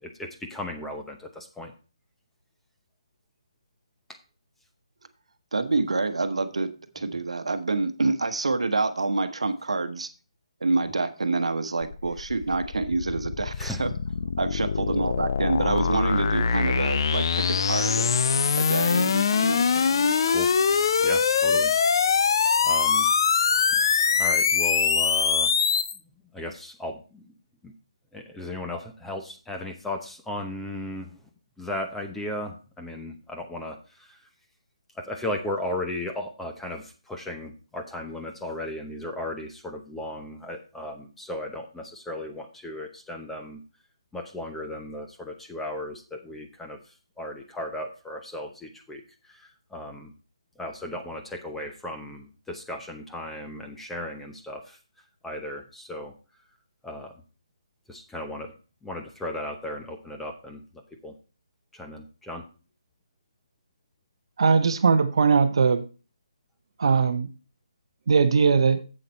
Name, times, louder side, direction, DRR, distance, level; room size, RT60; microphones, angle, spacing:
voice 1, 0.0-1.7 13.6-13.9 20.2-20.5 21.0-21.7 22.6-23.1 23.7-23.8 24.2-25.5 26.3-27.3 27.6-27.7 28.1-31.1 31.6-34.2 35.0-43.6 44.1-46.8 47.2-49.0 49.3-50.1 50.6-54.8 55.2-56.1 56.8-57.1 57.9-58.5 58.8-60.6 61.0-61.1 61.7-62.4, left 1 dB, 5° left, 3 dB, 0.9 m, -36 dB
voice 2, 5.5-10.1 10.6-13.9 14.2-18.1 18.6-20.1, right 3 dB, 75° right, 10 dB, 1.1 m, -27 dB
sound 1, 11.8-26.0, left 6 dB, 45° left, 0.6 m, -23 dB
voice 3, 64.4-65.8 66.8-67.3 68.1-68.8, right 5 dB, 55° right, 10 dB, 0.8 m, -20 dB
7.8 x 7.7 x 4.3 m, 0.35 s
figure-of-eight pair, 155°, 3 cm